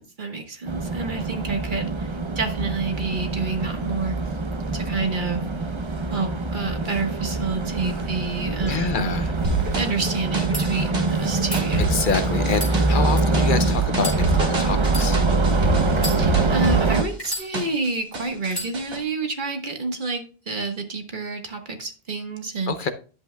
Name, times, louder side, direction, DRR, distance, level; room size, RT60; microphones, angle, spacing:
voice 1, 0.0-4.4 4.7-5.4 6.1-9.1 9.7-11.8 16.2-22.7, right 3 dB, 55° right, 5 dB, 1.5 m, -29 dB
sound 1, 0.7-17.0, right 3 dB, 35° right, 0.7 m, -24 dB
voice 2, 8.6-9.3 11.8-15.2 22.7-22.9, left 5 dB, 55° left, 10 dB, 0.8 m, -27 dB
sound 2, 9.4-17.9 18.1-19.0, right 2 dB, 70° right, 2.1 m, -27 dB
sound 3, 10.5-10.6 11.4-11.6 12.5-13.4 13.9-14.2 14.8-15.1 15.9-16.6 17.2-17.9 18.5-18.7, equal, 20° left, 4.7 m, -32 dB
10.5 x 8.0 x 2.2 m, 0.37 s
omnidirectional pair, 1.0 m